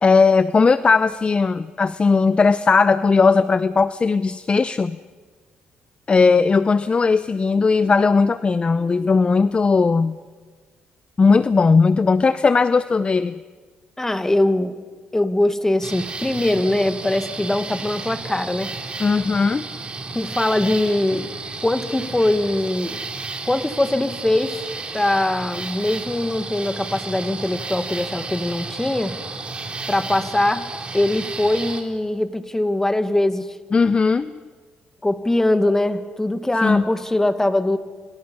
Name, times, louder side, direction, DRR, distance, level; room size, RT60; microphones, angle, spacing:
voice 1, 0.0-5.0 6.1-10.2 11.2-13.3 19.0-19.7 33.7-34.4 36.6-36.8, left 4 dB, 30° left, 14 dB, 0.6 m, -17 dB
voice 2, 14.0-14.7 15.1-18.7 20.1-21.3 21.6-23.0 23.5-24.7 24.9-29.2 29.9-30.7 30.9-33.6 35.0-37.8, left 1 dB, 15° left, 9 dB, 1.9 m, -21 dB
sound 1, 15.8-31.8, right 3 dB, 30° right, 3.6 m, -32 dB
28.5 x 26.5 x 5.6 m, 1.5 s
supercardioid pair, 75°, 3 cm